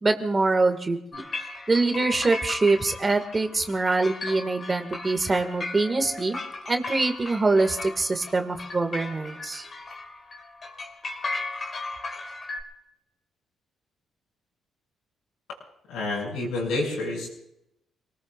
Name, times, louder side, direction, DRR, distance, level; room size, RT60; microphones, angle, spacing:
voice 1, 0.0-1.2 1.7-6.4 6.7-9.6, right 3 dB, 25° right, 6 dB, 2.0 m, -24 dB
sound 1, 1.1-12.6, left 3 dB, 35° left, 3.5 m, -37 dB
voice 2, 15.9-17.3, left 2 dB, 85° left, -2 dB, 7.4 m, -28 dB
29.5 x 19.5 x 2.5 m, 0.82 s
cardioid pair, 90°, 0 cm